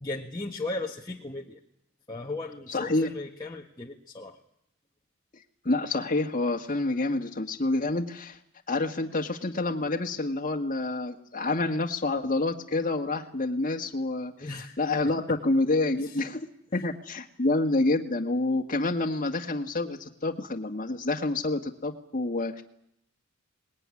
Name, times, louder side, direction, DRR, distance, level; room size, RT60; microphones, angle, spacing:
voice 1, 0.0-1.6 2.1-4.4 14.4-14.8 16.0-16.2 16.7-16.8, left 2 dB, 20° left, -1 dB, 1.5 m, -36 dB
voice 2, 2.7-3.1 5.6-8.4 8.7-16.5 16.7-22.6, left 2 dB, 40° left, 2 dB, 1.9 m, -28 dB
25.5 x 20.5 x 9.9 m, 0.74 s
head